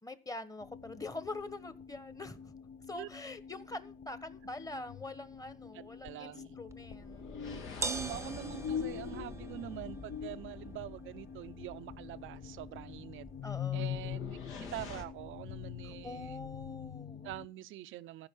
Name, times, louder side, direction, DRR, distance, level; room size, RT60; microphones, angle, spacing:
voice 1, 0.0-2.5 2.9-7.2 7.5-8.1 13.4-13.9 15.8-17.3, left 2 dB, 15° left, 1.3 m, -44 dB
sound 1, 0.6-17.5, left 8 dB, 55° left, 0.7 m, -44 dB
sound 2, 4.1-4.4 6.9-11.4 13.8-15.0, left 4 dB, 85° left, 2.2 m, -48 dB
voice 2, 5.7-6.6 7.8-13.3 13.7-16.4 17.2-18.3, right 14 dB, 85° right, 0.6 m, -45 dB
sound 3, 6.7-16.7, right 3 dB, 15° right, 0.7 m, -47 dB
14.5 x 5.2 x 6.9 m
cardioid pair, 90°, 20 cm